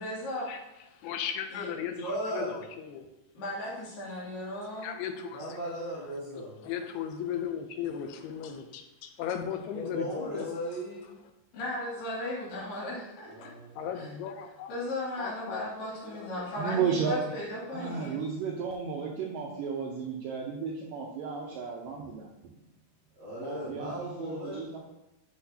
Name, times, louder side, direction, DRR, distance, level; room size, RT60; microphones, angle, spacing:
voice 1, 0.0-0.5 1.5-1.7 3.3-4.9 9.3-9.4 11.5-13.5 13.9-14.1 14.7-18.2, left 1 dB, 60° left, -6 dB, 3.8 m, -36 dB
voice 2, 1.0-3.1 4.8-5.6 6.4-10.7 13.4-14.7 15.2-15.6 16.1-16.5, left 8 dB, 85° left, 7 dB, 2.6 m, -37 dB
voice 3, 2.0-2.6 5.3-6.6 9.7-11.1 13.3-13.7 23.2-24.8, equal, 45° right, -9 dB, 2.0 m, -37 dB
voice 4, 16.6-17.3 17.7-22.5 23.4-24.8, right 6 dB, 80° right, -1 dB, 2.0 m, -33 dB
8.1 x 6.0 x 2.7 m, 0.92 s
omnidirectional pair, 4.6 m